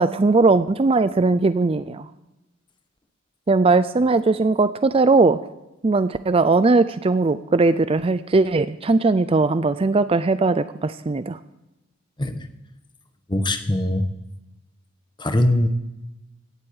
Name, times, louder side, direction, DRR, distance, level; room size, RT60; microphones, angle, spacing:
voice 1, 0.0-2.1 3.5-5.4 5.8-11.4, right 3 dB, 30° right, 13 dB, 0.4 m, -19 dB
voice 2, 13.3-14.0 15.2-15.7, left 1 dB, 20° left, 8 dB, 1.2 m, -21 dB
16.5 x 8.1 x 8.8 m, 0.99 s
head